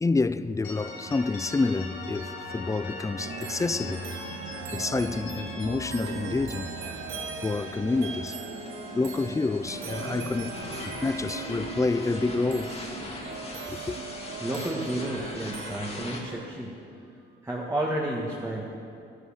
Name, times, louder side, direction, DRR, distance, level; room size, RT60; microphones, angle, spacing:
voice 1, 0.0-4.0 4.7-6.7 7.4-8.4 8.9-10.5 10.8-12.7 13.7-14.0, left 3 dB, 15° left, 0.5 m, -28 dB
sound 1, 0.6-9.4 9.7-13.8, left 1 dB, 80° left, 3.6 m, -42 dB
sound 2, 3.2-16.5, right 6 dB, 85° right, 1.1 m, -40 dB
sound 3, 6.0-16.2, left 2 dB, 30° left, 2.5 m, -41 dB
voice 2, 14.4-16.7 17.4-18.6, right 1 dB, 15° right, 1.9 m, -31 dB
12.5 x 11.5 x 7.3 m
cardioid pair, 90°, 20 cm